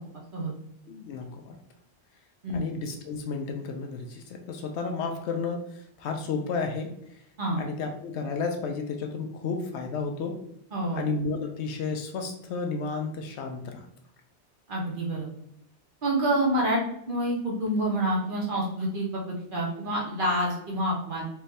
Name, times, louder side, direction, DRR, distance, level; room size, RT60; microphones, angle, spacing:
voice 1, 0.9-1.5 2.5-5.6 6.0-6.9 7.6-10.4 10.9-13.9, left 4 dB, 80° left, 4 dB, 0.9 m, -32 dB
voice 2, 10.7-11.0 14.7-15.3 16.0-16.8 17.1-21.2, right 1 dB, 50° right, -3 dB, 1.1 m, -27 dB
3.4 x 2.6 x 3.2 m, 0.75 s
omnidirectional pair, 1.2 m